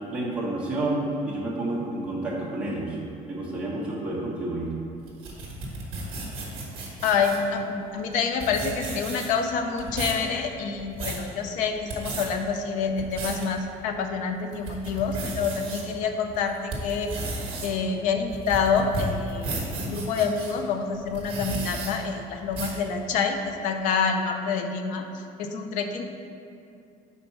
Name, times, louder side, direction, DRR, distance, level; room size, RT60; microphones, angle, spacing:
voice 1, 0.1-3.0 3.3-4.7, right 2 dB, 10° right, -7 dB, 1.2 m, -29 dB
sound 1, 5.1-7.5 8.1-8.2 8.4-9.4 9.8-10.2 10.7-11.2 11.8-12.3 12.8-13.4 13.9-14.0 14.5-15.8 16.3-20.5 21.1-21.9 22.5-22.8, right 3 dB, 35° right, 1.4 m, -33 dB
voice 2, 7.0-17.1 17.6-19.6 19.8-25.0 25.4-26.1, left 5 dB, 60° left, 6 dB, 0.6 m, -27 dB
5.2 x 4.3 x 5.8 m, 2.6 s
cardioid pair, 170°, 15 cm